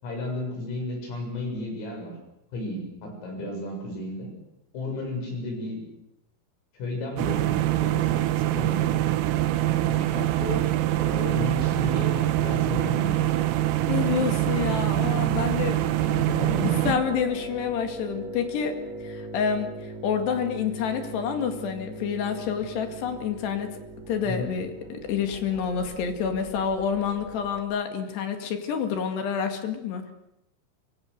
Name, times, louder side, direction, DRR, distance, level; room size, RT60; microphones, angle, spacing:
voice 1, 0.0-2.2 2.5-4.3 4.7-5.8 6.8-8.2 8.5-9.1 9.9-10.7 11.0-13.3 16.0-17.0 24.2-24.5, left 1 dB, 85° left, 1 dB, 9.8 m, -33 dB
sound 1, 7.2-17.0, right 14 dB, 85° right, 3.8 m, -24 dB
voice 2, 13.9-15.8 16.5-18.7 19.0-23.7 24.1-30.0, left 7 dB, 60° left, 6 dB, 3.7 m, -28 dB
sound 2, 16.4-27.6, right 2 dB, 65° right, 4.5 m, -40 dB
25.0 x 24.5 x 6.6 m, 0.86 s
omnidirectional pair, 5.8 m